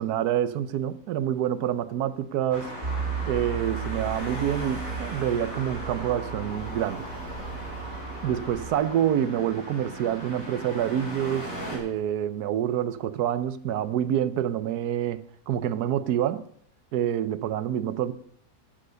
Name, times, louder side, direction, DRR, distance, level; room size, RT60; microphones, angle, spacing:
voice 1, 0.0-2.7 3.3-7.1 8.2-16.5 16.9-18.1, right 10 dB, 80° right, 1.3 m, -27 dB
Traffic noise roadway noise, 2.5-11.8, equal, 30° left, 4.9 m, -38 dB
sound 1, 2.8-8.8, right 6 dB, 35° right, 2.0 m, -35 dB
11.5 x 9.1 x 6.7 m
omnidirectional pair, 1.7 m